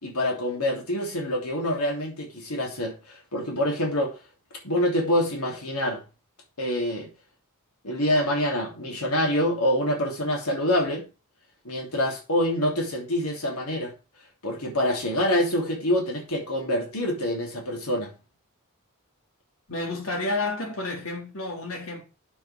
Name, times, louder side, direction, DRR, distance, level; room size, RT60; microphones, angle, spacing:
voice 1, 0.0-4.1 4.6-6.0 6.6-7.1 7.8-11.0 11.6-13.9 14.4-18.1, left 1 dB, 90° left, 3.0 m, -26 dB
voice 2, 19.7-22.1, left 2 dB, 65° left, 3.5 m, -30 dB
8.9 x 7.0 x 4.9 m
head